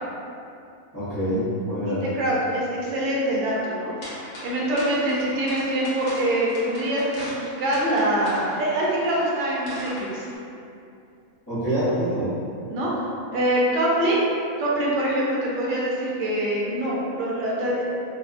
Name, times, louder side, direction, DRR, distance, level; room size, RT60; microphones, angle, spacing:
voice 1, 0.9-2.1 11.5-12.3, equal, 25° left, -17 dB, 0.4 m, -25 dB
voice 2, 2.2-3.9 4.4-10.2 12.7-13.0 13.3-14.2 14.6-17.8, right 1 dB, 65° right, -5 dB, 0.8 m, -24 dB
sound 1, 4.0-10.4, equal, 60° left, 1.0 m, -40 dB
2.7 x 2.2 x 2.4 m, 2.6 s
omnidirectional pair, 1.5 m